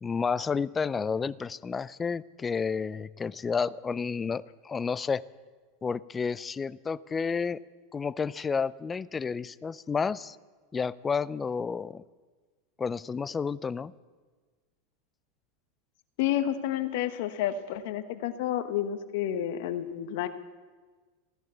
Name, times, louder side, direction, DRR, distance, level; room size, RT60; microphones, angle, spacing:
voice 1, 0.0-5.2 5.8-7.6 7.9-10.4 10.7-12.0 12.8-13.9, left 5 dB, 20° left, 19 dB, 0.4 m, -31 dB
voice 2, 16.2-20.3, left 11 dB, 65° left, 10 dB, 1.2 m, -30 dB
16.0 x 11.0 x 8.1 m, 1.4 s
hypercardioid pair, 95°, 0 cm